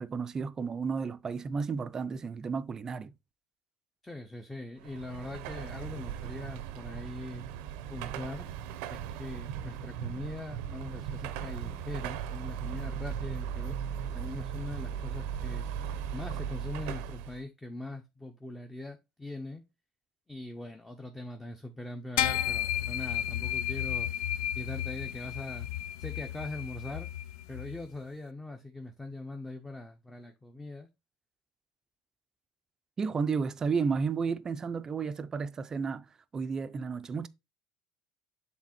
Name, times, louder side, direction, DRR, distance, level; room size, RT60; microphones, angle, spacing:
voice 1, 0.0-3.1 33.0-36.1 36.3-37.3, right 5 dB, 30° right, 0.5 m, -32 dB
voice 2, 4.0-7.5 7.9-8.5 8.9-13.8 14.1-15.7 16.1-19.6 20.3-24.1 24.5-25.7 26.0-27.1 27.5-30.9, left 2 dB, 10° left, 0.8 m, -41 dB
Car passing by / Traffic noise roadway noise / Engine, 4.8-17.4, right 8 dB, 80° right, 0.7 m, -38 dB
sound 1, 22.2-27.8, left 11 dB, 90° left, 0.5 m, -33 dB
7.3 x 3.5 x 4.3 m
supercardioid pair, 115°, 2 cm